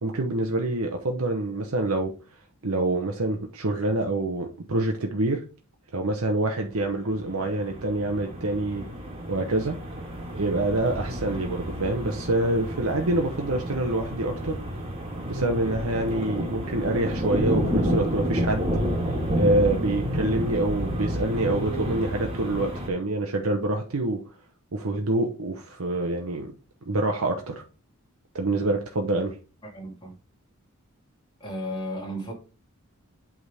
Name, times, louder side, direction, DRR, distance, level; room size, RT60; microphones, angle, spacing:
voice 1, 0.0-2.1 2.6-5.4 5.9-8.9 9.3-9.8 10.3-14.6 15.3-18.7 19.4-24.2 24.7-26.5 26.9-27.6 28.3-29.4, right 2 dB, 85° right, 1.0 m, -26 dB
sound 1, 7.0-22.9, equal, 25° right, 1.9 m, -30 dB
voice 2, 29.6-30.1 31.4-32.3, equal, 20° left, 2.7 m, -34 dB
8.2 x 3.7 x 4.9 m
head